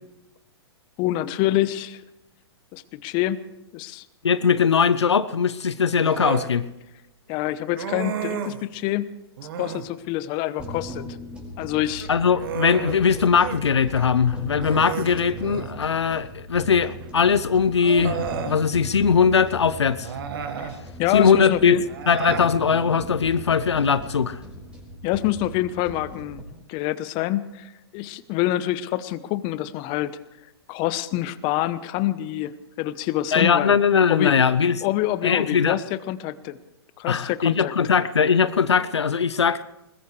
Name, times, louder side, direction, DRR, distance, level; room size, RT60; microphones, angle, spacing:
voice 1, 1.0-2.0 2.7-3.4 3.7-4.0 7.3-9.1 9.6-11.0 11.6-12.1 20.6-20.7 21.0-21.8 25.0-26.4 26.7-30.2 30.7-33.8 34.1-34.4 34.8-36.6 37.0-37.7, left 14 dB, 35° left, 0.9 m, -26 dB
voice 2, 4.2-6.6 12.1-20.1 21.1-21.8 22.1-24.4 33.3-34.8 35.2-35.8 37.1-39.6, left 6 dB, 85° left, 0.7 m, -20 dB
Human voice, 6.0-6.5 7.7-8.6 9.4-9.9 11.8-13.6 14.0-14.1 14.6-15.8 17.0-17.1 17.8-18.6 20.0-20.8 21.9-22.5, right 7 dB, 55° right, 1.6 m, -32 dB
sound 1, 10.6-26.4, equal, 5° right, 5.0 m, -39 dB
21.0 x 21.0 x 3.3 m
hypercardioid pair, 120°, 14 cm